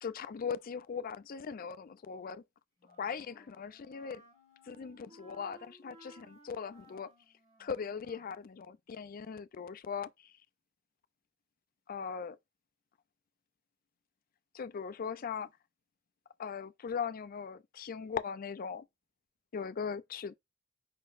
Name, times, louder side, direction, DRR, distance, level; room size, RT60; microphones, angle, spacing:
voice 1, 0.0-2.4 3.0-4.2 4.7-7.1 7.6-10.1 11.9-12.4 14.5-15.5 16.4-18.9 19.5-20.3, left 6 dB, 45° left, 0.4 m, -39 dB
Wind instrument woodwind instrument, 2.8-8.4, right 1 dB, 35° right, 2.0 m, -60 dB
5.3 x 3.8 x 2.5 m
head